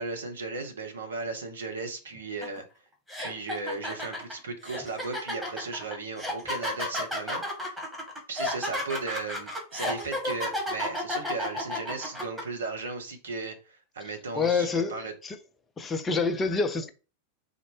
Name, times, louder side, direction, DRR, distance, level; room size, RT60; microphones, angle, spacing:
voice 1, 0.0-2.6 3.2-7.8 8.3-15.1, right 3 dB, 70° right, 0.8 m, -36 dB
sound 1, 2.4-2.6 3.1-12.4, left 1 dB, 5° right, 1.4 m, -32 dB
voice 2, 14.3-15.0 15.2-15.4 15.8-16.9, left 4 dB, 20° left, 0.5 m, -26 dB
3.9 x 2.1 x 3.1 m
figure-of-eight pair, 90°, 0 cm